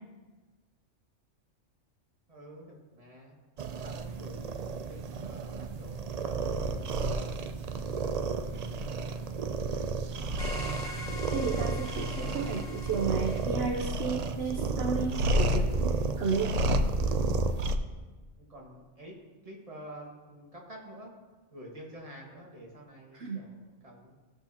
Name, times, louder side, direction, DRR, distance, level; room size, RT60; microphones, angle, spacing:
voice 1, 2.3-3.4 3.8-6.8 7.6-8.8 9.2-9.9 18.4-19.2 19.4-21.1 21.5-24.2, right 1 dB, 30° right, -1 dB, 1.6 m, -49 dB
sound 1, 3.6-17.8, right 2 dB, 90° right, 0.3 m, -31 dB
sound 2, 10.4-13.5, left 2 dB, 55° left, 1.5 m, -43 dB
voice 2, 11.3-15.7 16.2-16.5 23.1-23.4, right 5 dB, 60° right, 2 dB, 0.9 m, -32 dB
15.0 x 6.4 x 2.8 m, 1.3 s
omnidirectional pair, 1.3 m